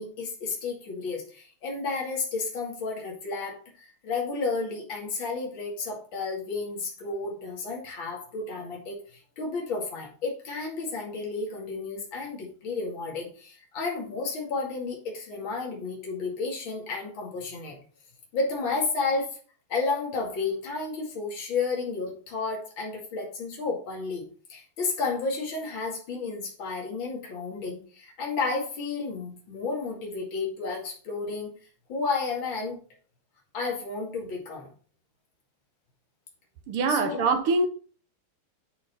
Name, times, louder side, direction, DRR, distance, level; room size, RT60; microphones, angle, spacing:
voice 1, 0.0-17.8 18.3-19.3 19.7-31.5 31.9-32.8 33.5-34.7 36.9-37.2, left 4 dB, 65° left, 3.0 m, -32 dB
voice 2, 36.7-37.7, right 3 dB, 80° right, 1.9 m, -24 dB
11.5 x 4.2 x 4.2 m
omnidirectional pair, 2.4 m